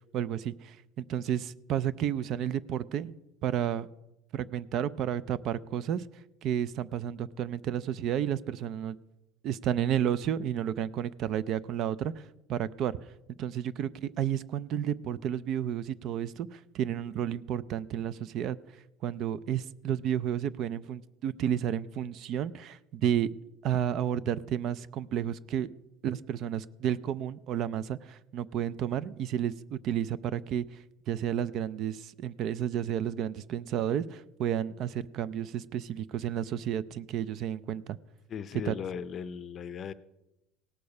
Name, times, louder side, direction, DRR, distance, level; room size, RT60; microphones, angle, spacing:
voice 1, 0.1-3.1 3.4-3.9 4.3-6.0 6.4-9.0 9.4-13.0 13.4-18.6 19.0-23.3 23.6-25.7 26.0-38.0 38.7-38.8, right 10 dB, 50° right, 19 dB, 0.4 m, -31 dB
voice 2, 38.3-39.9, left 7 dB, 35° left, 15 dB, 0.5 m, -37 dB
17.5 x 6.8 x 5.3 m, 0.94 s
cardioid pair, 140°, 0 cm